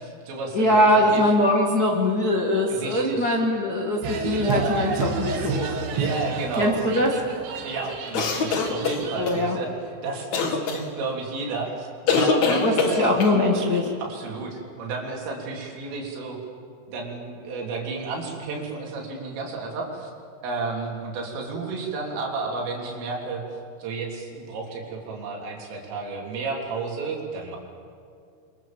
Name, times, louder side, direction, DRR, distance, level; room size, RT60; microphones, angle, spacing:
voice 1, 0.0-1.2 2.7-3.4 5.9-7.0 7.6-11.9 12.2-13.0 14.1-16.4 16.9-20.1 20.4-27.6, right 3 dB, 90° right, -1 dB, 6.0 m, -32 dB
voice 2, 0.5-5.8 6.6-7.1 9.2-9.6 12.6-13.9, left 1 dB, 70° left, -2 dB, 0.9 m, -22 dB
sound 1, 4.0-9.3, right 4 dB, 70° right, 4.3 m, -30 dB
sound 2, 8.1-9.4 10.3-10.8 12.1-13.4, left 4 dB, 50° left, 2.5 m, -23 dB
29.5 x 25.0 x 7.4 m, 2.4 s
omnidirectional pair, 5.6 m